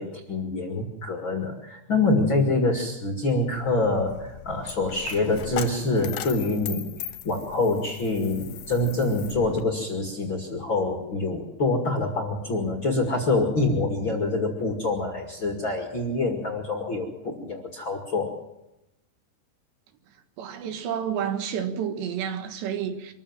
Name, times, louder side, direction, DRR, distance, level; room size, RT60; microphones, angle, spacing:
voice 1, 0.0-6.9 7.2-18.3, left 2 dB, 40° left, 2.1 m, -26 dB
Coin (dropping), 3.5-9.6, left 10 dB, 65° left, 2.7 m, -39 dB
voice 2, 20.4-23.1, right 8 dB, 75° right, 3.7 m, -30 dB
25.0 x 14.5 x 7.3 m
omnidirectional pair, 5.1 m